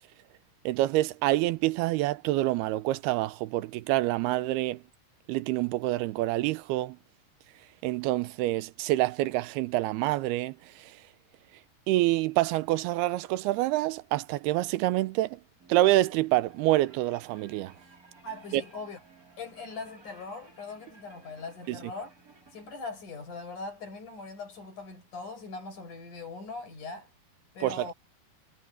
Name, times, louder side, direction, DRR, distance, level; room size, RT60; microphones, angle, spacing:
voice 1, 0.7-4.8 5.3-7.0 7.8-11.0 11.9-15.4 15.7-17.7 18.5-18.6 21.7-21.8 27.6-27.9, right 16 dB, 85° right, 2.7 m, -27 dB
sound 1, 15.6-22.7, right 3 dB, 20° right, 4.1 m, -57 dB
voice 2, 18.2-19.0 19.4-22.1 22.5-27.1 27.5-27.9, left 3 dB, 50° left, 7.8 m, -41 dB
omnidirectional pair, 4.5 m